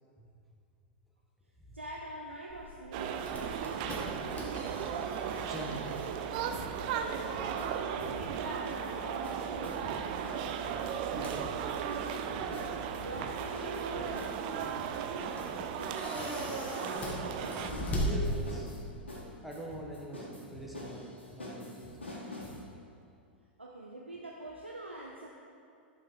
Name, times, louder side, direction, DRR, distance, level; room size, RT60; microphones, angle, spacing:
voice 1, 1.7-4.0 7.7-10.0 13.0-14.7 23.6-25.3, right 1 dB, 90° right, -2 dB, 0.7 m, -44 dB
sound 1, 2.5-18.9, equal, 25° left, 1.8 m, -41 dB
sound 2, 2.9-17.7, right 8 dB, 50° right, 0.5 m, -36 dB
sound 3, 4.7-5.7 6.0-8.9 9.2-22.6, left 1 dB, 85° left, 1.8 m, -46 dB
voice 2, 5.5-6.3 11.0-11.5 12.3-12.6 18.0-18.9 19.4-22.0, right 1 dB, ahead, -3 dB, 1.3 m, -44 dB
10.5 x 5.8 x 4.6 m, 2.4 s
figure-of-eight pair, 95°, 6 cm